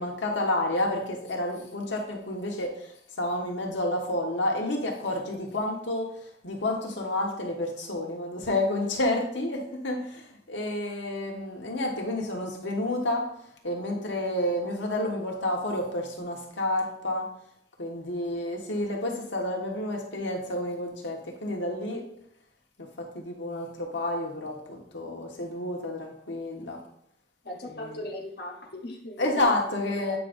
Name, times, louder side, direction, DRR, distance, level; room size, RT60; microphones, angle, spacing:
voice 1, 0.0-2.9 3.2-6.1 6.4-13.2 13.6-17.3 17.8-22.0 23.0-26.8 27.7-28.0 29.2-30.2, left 1 dB, 90° left, 0 dB, 1.4 m, -30 dB
voice 2, 27.4-29.5 29.9-30.2, left 1 dB, 60° left, 2 dB, 0.9 m, -38 dB
8.5 x 5.2 x 2.6 m, 0.69 s
head